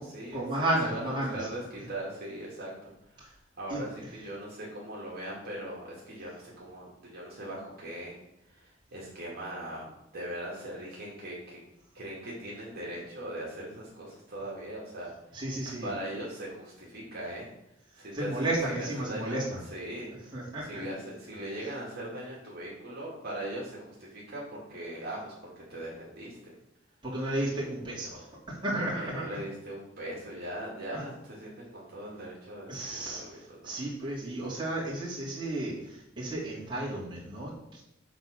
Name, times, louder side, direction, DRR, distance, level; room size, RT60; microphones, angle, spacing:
voice 1, 0.3-1.5 1.8-1.9 3.2-3.3 3.7-3.8 15.3-15.9 17.9-19.6 20.1-20.8 27.0-29.4 30.9-31.0 32.7-37.8, right 1 dB, 25° right, -7 dB, 3.0 m, -33 dB
voice 2, 0.8-1.6 1.9-8.2 8.5-11.6 11.9-15.4 15.8-17.5 17.9-18.5 18.7-19.4 19.7-20.3 20.6-26.5 28.8-33.7, right 1 dB, 50° right, -5 dB, 2.3 m, -40 dB
7.8 x 4.1 x 6.4 m, 0.85 s
head